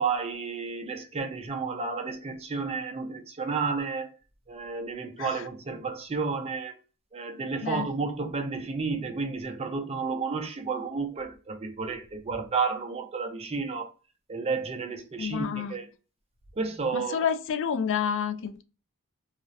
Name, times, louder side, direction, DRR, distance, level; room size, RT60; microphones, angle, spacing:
voice 1, 0.0-4.1 4.5-6.8 7.1-13.9 14.3-15.9 16.6-17.2, right 4 dB, 25° right, 0.4 m, -31 dB
voice 2, 15.2-15.7 16.9-18.6, left 7 dB, 55° left, 0.3 m, -29 dB
2.4 x 2.0 x 2.5 m
head